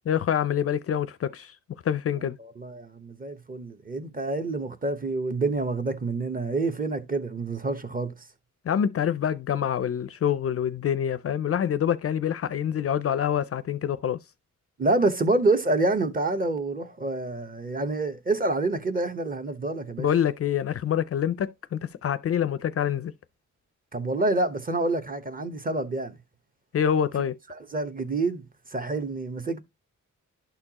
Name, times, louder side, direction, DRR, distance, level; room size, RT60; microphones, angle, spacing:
voice 1, 0.1-1.5 1.8-2.4 8.7-14.2 20.0-23.1 26.7-27.4, left 9 dB, 50° left, 0.4 m, -26 dB
voice 2, 2.2-8.1 14.8-20.1 23.9-26.2 27.5-29.6, right 2 dB, 25° right, 1.0 m, -27 dB
11.5 x 4.4 x 2.9 m
wide cardioid pair, 140°, 31 cm